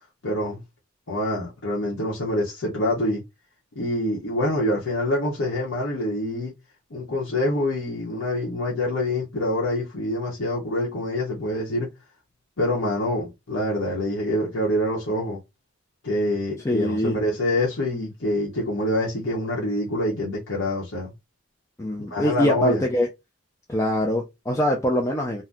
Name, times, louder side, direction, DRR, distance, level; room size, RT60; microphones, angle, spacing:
voice 1, 0.2-0.6 1.1-3.2 3.7-6.5 6.9-11.9 12.6-15.4 16.0-21.1 22.0-22.8, left 1 dB, 70° left, 1.0 m, -26 dB
voice 2, 16.6-17.2 21.8-23.1 23.7-25.4, equal, 15° left, 0.4 m, -23 dB
2.7 x 2.2 x 3.5 m
head